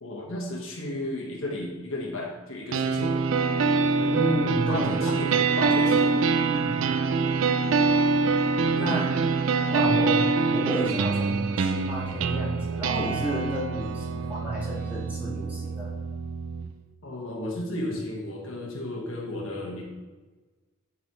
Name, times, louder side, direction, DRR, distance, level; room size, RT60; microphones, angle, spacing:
voice 1, 0.0-3.1 4.7-6.1 8.7-9.1 17.0-19.8, left 1 dB, 75° left, -2 dB, 1.3 m, -33 dB
sound 1, 2.7-16.7, right 4 dB, 70° right, 0.4 m, -25 dB
voice 2, 3.9-4.9 5.3-5.5 6.4-6.8 8.5-9.0 9.7-15.9, right 1 dB, 5° right, -8 dB, 2.1 m, -31 dB
9.6 x 4.0 x 3.1 m, 1.2 s
head